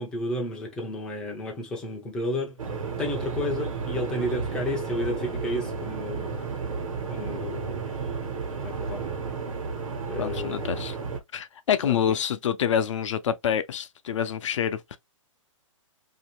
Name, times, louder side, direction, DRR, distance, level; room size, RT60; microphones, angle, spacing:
voice 1, 0.0-2.6 3.0-6.4 7.1-7.9 8.6-9.2 10.1-10.6 11.9-12.2, left 1 dB, 5° left, 0.4 m, -32 dB
sound 1, 2.6-11.2, right 5 dB, 80° right, 1.2 m, -32 dB
voice 2, 10.2-11.0 11.3-15.0, left 8 dB, 65° left, 0.5 m, -27 dB
2.7 x 2.6 x 3.0 m
hypercardioid pair, 165°, 17 cm